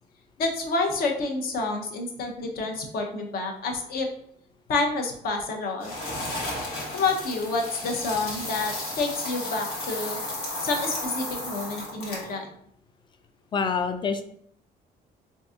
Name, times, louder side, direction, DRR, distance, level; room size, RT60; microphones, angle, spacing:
voice 1, 0.4-4.1 4.7-5.9 6.9-10.2 10.6-12.5, left 3 dB, 60° left, 3 dB, 0.7 m, -28 dB
sound 1, 5.8-12.4, left 1 dB, 80° left, 1.3 m, -33 dB
voice 2, 13.5-14.2, left 5 dB, 30° left, 8 dB, 0.3 m, -26 dB
3.8 x 2.6 x 2.4 m, 0.68 s
cardioid pair, 110°, 17 cm